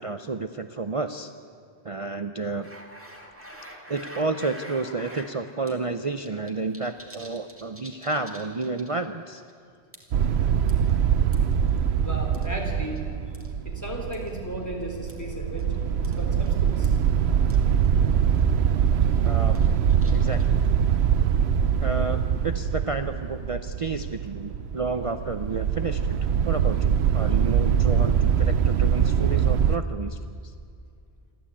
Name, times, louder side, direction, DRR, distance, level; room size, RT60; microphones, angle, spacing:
voice 1, 0.0-1.3 1.8-2.7 3.9-9.4 19.2-19.6 20.1-20.6 21.8-26.2 26.4-30.2, right 3 dB, 35° right, 8 dB, 0.6 m, -30 dB
sound 1, 2.6-5.3 5.7-5.8 6.0-9.1 9.4-9.5 9.9-10.2 10.7-11.5 12.3-13.0 13.3-13.5 14.1-14.3 15.1-15.2 15.6-15.7 16.0-16.2 16.5-16.6 16.8-16.9 17.5-17.6 17.8-17.9 18.3-18.5 19.0-20.6, equal, 10° right, 2.4 m, -45 dB
sound 2, 10.1-29.8, right 8 dB, 75° right, 1.0 m, -23 dB
voice 2, 12.0-13.0 13.6-17.0, right 1 dB, 15° left, 0 dB, 3.8 m, -35 dB
28.0 x 12.5 x 8.6 m, 2.3 s
omnidirectional pair, 1.1 m